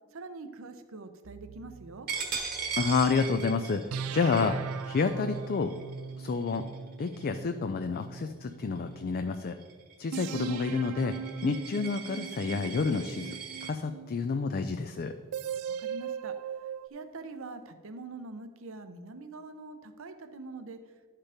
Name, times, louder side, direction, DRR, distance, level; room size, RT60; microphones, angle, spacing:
voice 1, 0.1-2.1 15.4-16.4 16.9-20.8, right 3 dB, 70° right, 8 dB, 0.7 m, -44 dB
sound 1, 1.3-3.3 3.9-9.1 10.1-14.4 15.3-16.9, right 7 dB, 85° right, 0.4 m, -40 dB
Coin (dropping), 2.1-7.5 7.9-8.2 8.6-13.7, right 6 dB, 45° right, 1.2 m, -40 dB
voice 2, 2.8-4.6 4.8-5.7 6.2-6.6 7.0-9.6 10.0-11.2 11.4-15.1, left 4 dB, 45° left, 7 dB, 0.4 m, -29 dB
11.5 x 4.5 x 5.0 m, 1.5 s
head